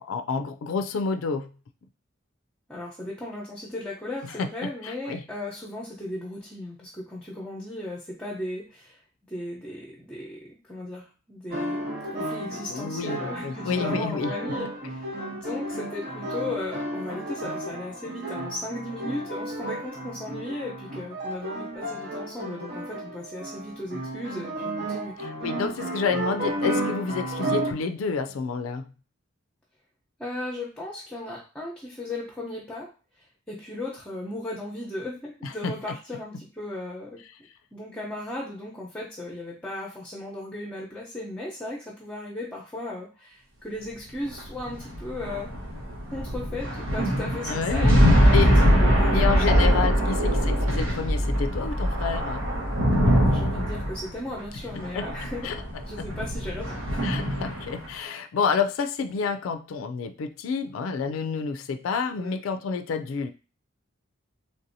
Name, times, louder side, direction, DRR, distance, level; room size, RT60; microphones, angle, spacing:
voice 1, 0.1-1.5 4.4-5.2 12.7-14.3 25.4-28.8 35.6-35.7 47.5-48.0 48.3-48.5 49.1-52.4 55.0-55.1 55.4-55.6 56.0-56.1 57.0-63.3, left 5 dB, 90° left, 7 dB, 0.3 m, -29 dB
voice 2, 2.7-9.0 9.3-11.8 12.1-25.2 30.2-32.9 33.5-37.2 37.7-45.5 46.1-48.4 48.7-49.9 53.2-55.5 55.8-57.1 62.2-62.4, left 1 dB, 5° left, -5 dB, 0.7 m, -36 dB
sound 1, 11.5-27.7, right 1 dB, 55° right, 0.9 m, -33 dB
sound 2, 44.3-57.9, equal, 80° right, 1.1 m, -22 dB
3.5 x 2.6 x 2.6 m, 0.35 s
head